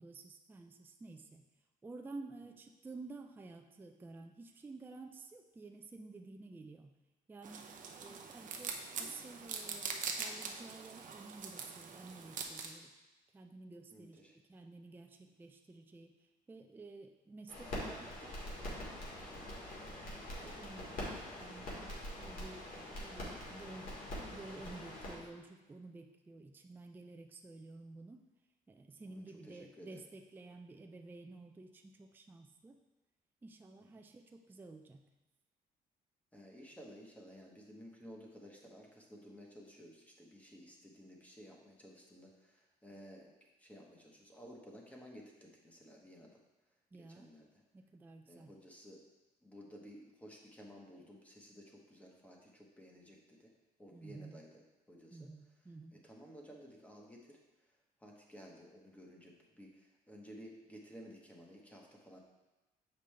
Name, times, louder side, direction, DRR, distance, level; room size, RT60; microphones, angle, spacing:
voice 1, 0.0-1.4 1.8-6.9 7.3-12.9 13.3-16.2 16.5-19.6 20.4-21.1 21.4-24.0 24.3-28.2 28.7-32.8 33.4-35.0 46.9-47.3 47.7-48.5 53.9-54.4 55.1-56.0, right 3 dB, 10° right, 4 dB, 0.3 m, -52 dB
sound 1, 7.4-12.7, right 5 dB, 50° right, 0.7 m, -43 dB
voice 2, 13.9-14.3 29.0-30.0 36.3-43.3 43.6-46.4 47.1-47.5 48.2-49.1 49.4-53.5 53.8-54.6 54.9-55.3 56.0-57.4 57.7-57.8 58.0-62.2, equal, 10° left, -1 dB, 1.1 m, -55 dB
sound 2, 17.5-25.2, left 1 dB, 55° left, 2.1 m, -44 dB
6.8 x 5.2 x 3.3 m, 1.1 s
cardioid pair, 125°, 17 cm